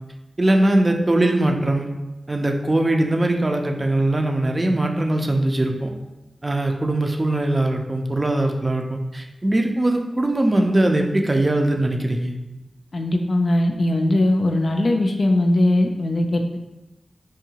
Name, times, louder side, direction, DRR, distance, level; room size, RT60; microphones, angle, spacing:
voice 1, 0.4-1.9 2.3-5.9 6.4-12.4, right 1 dB, 30° right, 3 dB, 0.5 m, -21 dB
voice 2, 12.9-16.6, left 1 dB, 55° left, 3 dB, 0.3 m, -20 dB
4.7 x 2.6 x 2.8 m, 0.99 s
wide cardioid pair, 70°, 0 cm